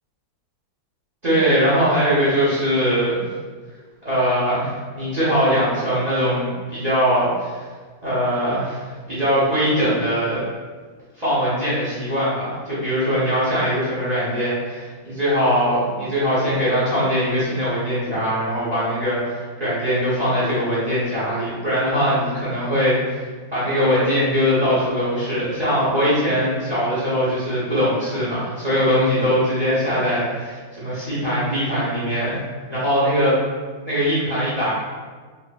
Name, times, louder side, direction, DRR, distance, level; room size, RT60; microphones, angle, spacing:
voice 1, 1.2-3.2 4.0-7.6 8.0-10.4 11.2-32.4 32.7-33.3 33.8-34.7, equal, 45° right, -10 dB, 0.5 m, -21 dB
4.2 x 3.0 x 2.3 m, 1.5 s
omnidirectional pair, 2.4 m